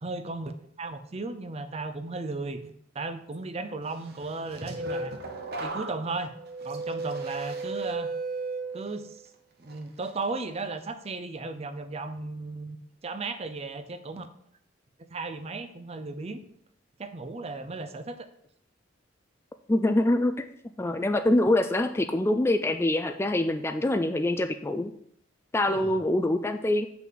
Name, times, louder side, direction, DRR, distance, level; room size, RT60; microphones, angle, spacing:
voice 1, 0.0-5.2 5.6-6.3 6.6-8.1 8.7-9.2 9.6-12.8 13.0-14.3 15.1-16.4 17.0-18.3 25.7-25.9, right 3 dB, 35° right, 9 dB, 0.6 m, -35 dB
sound 1, 4.2-9.3 9.7-10.1, right 3 dB, 55° right, 1.0 m, -35 dB
voice 2, 19.7-20.3 20.8-24.9 25.5-26.9, left 1 dB, 15° left, 8 dB, 0.3 m, -24 dB
7.4 x 5.8 x 3.9 m, 0.68 s
head